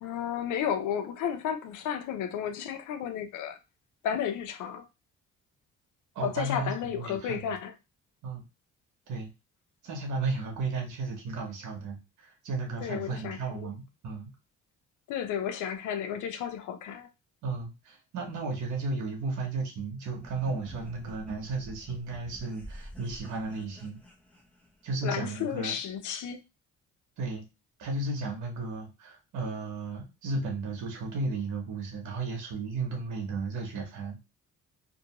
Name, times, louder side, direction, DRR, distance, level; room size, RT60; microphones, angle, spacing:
voice 1, 0.0-3.6 4.0-4.8 6.2-7.7 12.8-13.7 15.1-17.1 25.0-26.4, left 8 dB, 80° left, 0.6 m, -33 dB
voice 2, 6.1-7.6 8.2-8.4 9.1-9.3 9.8-14.3 17.4-24.0 24.8-25.8 27.2-27.4 27.8-34.2, right 3 dB, 70° right, 1.0 m, -34 dB
sound 1, 20.2-25.0, equal, 5° left, 0.7 m, -48 dB
2.6 x 2.2 x 2.9 m
cardioid pair, 90°, 30 cm